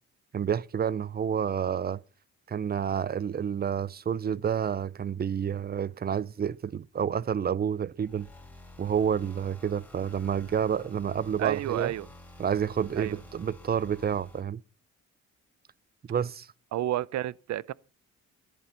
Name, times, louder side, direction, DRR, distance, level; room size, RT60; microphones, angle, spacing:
voice 1, 0.3-2.0 2.5-8.3 8.8-11.9 12.4-14.6 16.1-16.5, right 8 dB, 30° right, 0.6 m, -29 dB
sound 1, 8.0-14.4, left 1 dB, 5° left, 4.1 m, -50 dB
voice 2, 11.4-12.1 13.0-13.2 16.7-17.7, right 13 dB, 65° right, 0.7 m, -30 dB
14.5 x 11.0 x 5.7 m
cardioid pair, 90°, 30 cm